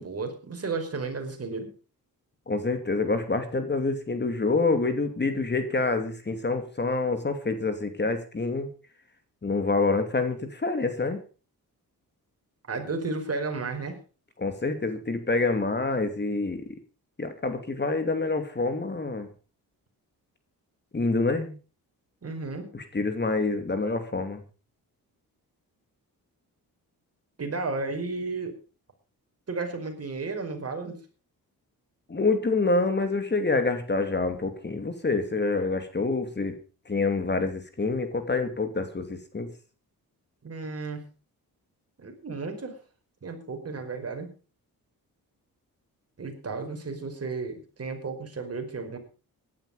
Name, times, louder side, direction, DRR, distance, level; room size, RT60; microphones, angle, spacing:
voice 1, 0.0-1.7 12.7-14.0 22.2-22.6 27.4-28.5 29.5-31.0 40.4-41.0 42.0-42.8 43.2-44.3 46.2-49.0, right 3 dB, 40° right, 5 dB, 5.0 m, -33 dB
voice 2, 2.5-8.7 9.4-11.2 14.4-16.6 17.2-19.3 20.9-21.5 22.7-24.4 32.1-36.5 36.9-39.5, left 3 dB, 30° left, 8 dB, 2.8 m, -27 dB
17.0 x 11.5 x 5.1 m, 0.36 s
cardioid pair, 100°, 36 cm